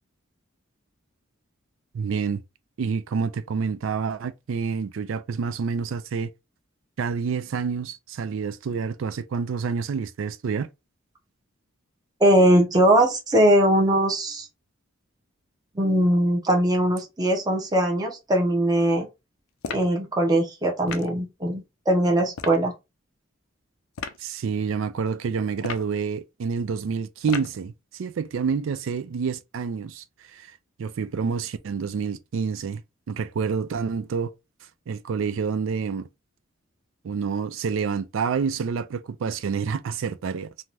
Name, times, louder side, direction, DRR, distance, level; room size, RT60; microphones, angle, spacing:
voice 1, 1.9-2.4 2.8-6.3 7.0-10.7 24.2-30.0 30.3-30.5 30.8-32.8 33.1-34.3 34.9-36.1 37.0-40.5, right 5 dB, 65° right, 0.4 m, -28 dB
voice 2, 12.2-14.5 15.8-19.1 19.7-22.7, right 1 dB, 20° right, 0.6 m, -20 dB
sound 1, 19.6-20.0 20.9-21.2 22.3-22.6 23.9-24.2 25.6-26.0 27.3-27.6, left 5 dB, 75° left, 0.4 m, -34 dB
2.7 x 2.3 x 3.1 m
head